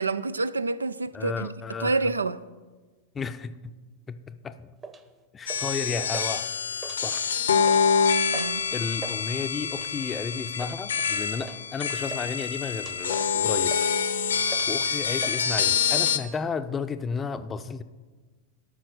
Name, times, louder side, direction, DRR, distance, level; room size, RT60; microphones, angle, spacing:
voice 1, 0.0-1.5 1.8-2.4 8.3-8.6, right 3 dB, 75° right, 0.4 m, -28 dB
voice 2, 1.1-2.0 3.1-3.7 4.1-4.7 5.3-6.5 7.0-7.3 8.7-13.8 14.7-17.8, left 5 dB, 20° left, 0.5 m, -33 dB
sound 1, 4.8-5.0 5.5-5.8 6.1-6.3 6.7-7.3 7.6-7.8 8.3-8.6 8.9-9.2 9.7-10.0 10.6-10.8 11.4-11.6 11.8-12.3 12.8-13.0 13.4-14.0 14.5-14.8 15.2-15.4 15.7-16.2, right 4 dB, 20° right, 1.0 m, -41 dB
sound 2, 5.5-16.2, left 6 dB, 70° left, 0.7 m, -26 dB
13.0 x 6.0 x 6.5 m
figure-of-eight pair, 90°, 0 cm